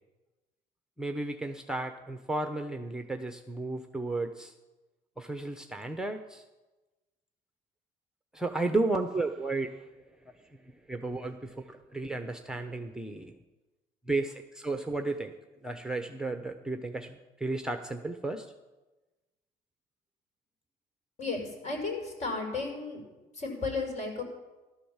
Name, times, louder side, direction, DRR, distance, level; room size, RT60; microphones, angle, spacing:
voice 1, 1.0-4.5 5.2-6.4 8.3-9.7 10.9-13.3 14.1-15.3 15.6-18.5, right 2 dB, 5° right, 6 dB, 1.0 m, -33 dB
voice 2, 21.2-23.0 23.3-24.2, left 3 dB, 45° left, 2 dB, 6.1 m, -34 dB
15.5 x 12.5 x 7.4 m, 1.1 s
cardioid pair, 110°, 17 cm